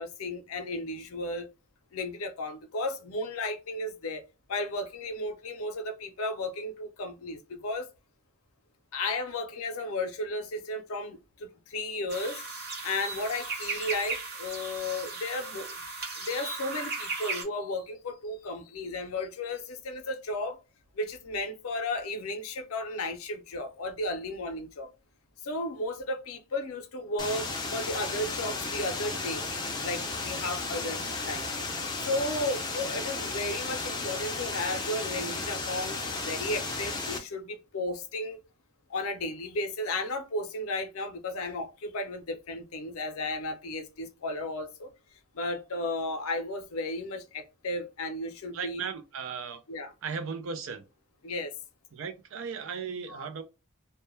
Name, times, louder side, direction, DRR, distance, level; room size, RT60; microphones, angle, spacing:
voice 1, 0.0-1.5 1.9-4.2 4.5-7.9 8.9-12.4 12.8-15.7 16.2-20.6 21.0-24.9 25.4-29.4 29.8-31.0 31.3-31.5 32.0-38.4 38.9-44.9 45.3-48.8 49.7-49.9 51.2-51.5 53.1-53.3, left 2 dB, 85° left, 0.5 m, -34 dB
sound 1, 12.1-17.4, right 4 dB, 45° right, 1.0 m, -36 dB
sound 2, 27.2-37.2, left 3 dB, 20° left, 0.4 m, -34 dB
voice 2, 48.5-49.6 50.0-50.8 51.9-53.4, right 5 dB, 70° right, 0.4 m, -36 dB
2.2 x 2.1 x 2.9 m
head